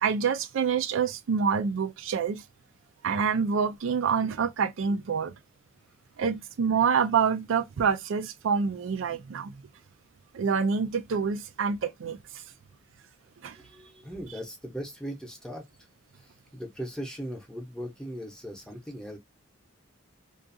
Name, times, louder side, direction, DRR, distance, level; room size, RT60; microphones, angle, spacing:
voice 1, 0.0-2.4 3.0-5.3 6.2-9.5 10.3-12.2 13.4-13.6, right 6 dB, 85° right, 0.4 m, -27 dB
voice 2, 13.5-15.6 16.2-19.2, equal, 5° left, 0.7 m, -39 dB
2.4 x 2.3 x 2.6 m
head